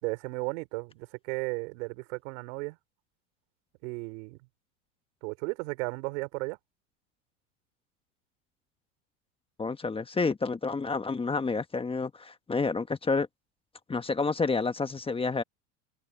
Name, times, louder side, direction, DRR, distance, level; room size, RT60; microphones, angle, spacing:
voice 1, 0.0-2.8 3.8-4.4 5.2-6.6, right 28 dB, 70° right, 3.5 m, -34 dB
voice 2, 9.6-13.3 13.9-15.4, left 4 dB, 15° left, 1.4 m, -29 dB
supercardioid pair, 110°, 36 cm